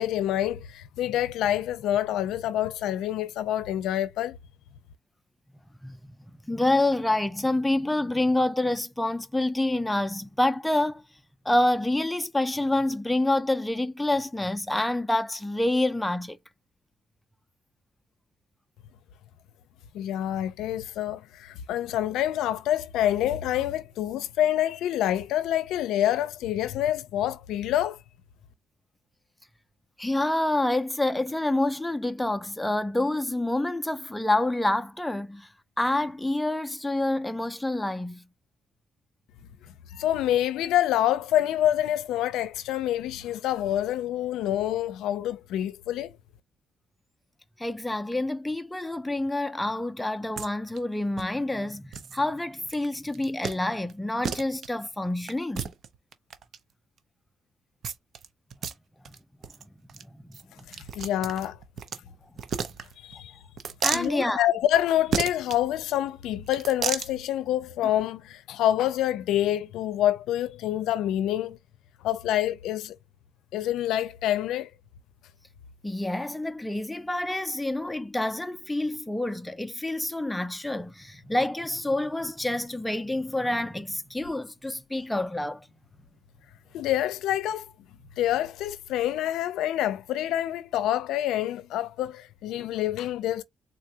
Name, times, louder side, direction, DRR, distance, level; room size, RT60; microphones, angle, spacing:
voice 1, 0.0-4.4 19.9-28.0 39.9-46.2 60.7-61.6 63.0-63.3 63.9-71.6 72.0-73.0 73.5-74.7 86.7-87.7 88.2-93.4, left 12 dB, 85° left, 0.5 m, -27 dB
voice 2, 5.8-6.1 6.4-11.0 11.5-16.4 30.0-35.5 35.8-38.2 47.6-55.7 60.1-60.4 63.8-64.4 75.8-85.7, left 1 dB, 10° left, 0.5 m, -27 dB
sound 1, 50.4-50.5 50.8-50.9 51.2-51.3 51.9-52.2 52.7-52.9 53.1-53.6 53.9-54.0 54.2-54.7 55.3-56.6 57.8-58.3 58.5-58.7 59.1-59.2 59.4-59.6 59.9-60.0 60.3-62.0 62.4-63.2 63.6-64.1 65.1-65.6 66.5-67.1, right 7 dB, 60° right, 0.7 m, -32 dB
4.0 x 2.3 x 2.8 m
cardioid pair, 90°, 0 cm